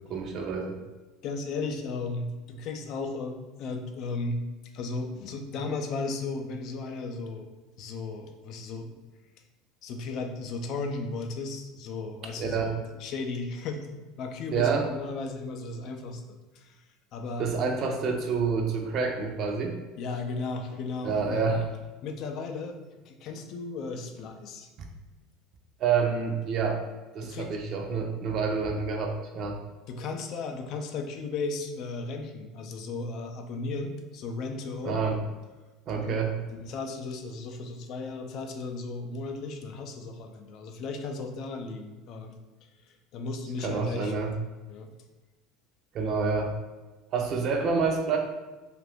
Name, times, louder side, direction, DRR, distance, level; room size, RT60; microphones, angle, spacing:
voice 1, 0.1-0.8 12.4-12.7 14.5-14.9 17.4-19.7 21.0-21.7 25.8-26.8 27.1-29.6 34.8-35.2 35.9-36.3 43.6-44.3 45.9-46.5 47.1-48.2, right 5 dB, 50° right, 2 dB, 0.5 m, -28 dB
voice 2, 1.2-4.4 4.7-7.5 7.8-8.9 9.8-13.9 14.2-16.8 17.1-17.5 20.0-21.5 22.0-22.8 23.0-24.7 27.2-27.6 29.9-35.1 35.9-36.2 36.5-42.4 43.1-44.1 44.7-45.0, left 3 dB, 55° left, 5 dB, 0.4 m, -35 dB
2.6 x 2.4 x 3.4 m, 1.2 s
supercardioid pair, 100°, 0 cm